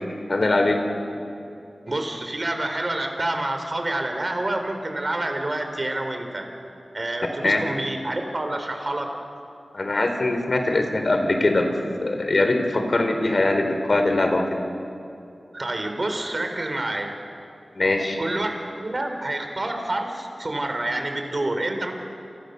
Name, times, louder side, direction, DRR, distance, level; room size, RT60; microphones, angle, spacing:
voice 1, 0.3-0.8 7.4-7.6 9.7-11.7 12.0-14.6 17.7-18.2, left 2 dB, 60° left, 5 dB, 4.0 m, -22 dB
voice 2, 1.9-6.5 6.9-9.2 15.5-17.1 18.2-21.9, right 1 dB, 40° right, 5 dB, 4.3 m, -28 dB
29.5 x 28.5 x 6.9 m, 2.7 s
wide cardioid pair, 70°, 0 cm